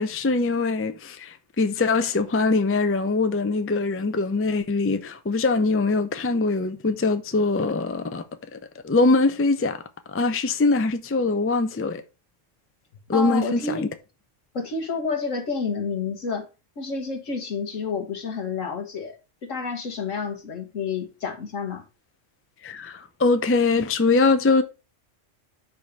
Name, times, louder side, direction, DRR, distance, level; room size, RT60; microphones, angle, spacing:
voice 1, 0.0-8.2 8.5-9.8 10.1-12.0 13.1-13.9 22.6-24.6, left 3 dB, 20° left, 0.4 m, -22 dB
voice 2, 13.1-13.8 14.5-16.5 16.8-19.2 19.4-21.8, left 5 dB, 80° left, 1.8 m, -29 dB
5.0 x 4.7 x 5.9 m
omnidirectional pair, 1.3 m